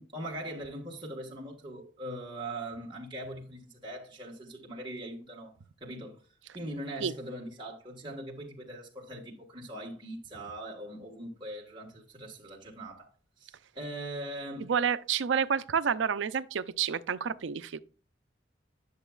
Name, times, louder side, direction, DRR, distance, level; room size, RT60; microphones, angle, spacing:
voice 1, 0.0-5.5 5.8-6.2 6.5-13.1 13.4-14.7, right 1 dB, 25° right, 1.6 m, -41 dB
voice 2, 14.7-17.8, right 7 dB, 80° right, 0.5 m, -29 dB
10.0 x 6.8 x 2.4 m
head